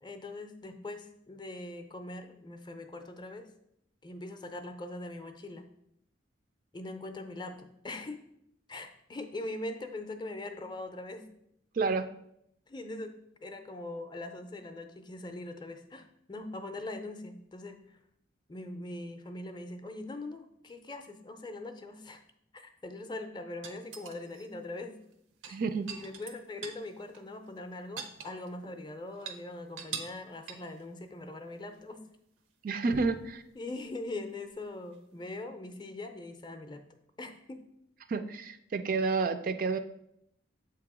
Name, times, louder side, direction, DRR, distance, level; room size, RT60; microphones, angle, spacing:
voice 1, 0.0-3.5 4.0-5.7 6.7-8.2 8.7-11.3 12.7-18.0 18.5-22.2 22.5-25.0 25.4-25.6 25.9-32.0 33.5-36.8 37.2-37.6, left 2 dB, 25° left, 7 dB, 0.5 m, -42 dB
voice 2, 11.7-12.1 25.5-25.9 32.6-33.4 38.1-39.8, right 4 dB, 45° right, 9 dB, 0.3 m, -30 dB
sound 1, 23.6-24.4 25.3-26.9 27.1-27.2 27.6-28.8 29.1-29.4 29.8-30.2 30.5-30.8 32.9-33.3 34.9-35.0, right 6 dB, 90° right, 0.7 m, -42 dB
7.2 x 2.9 x 4.8 m, 0.75 s
head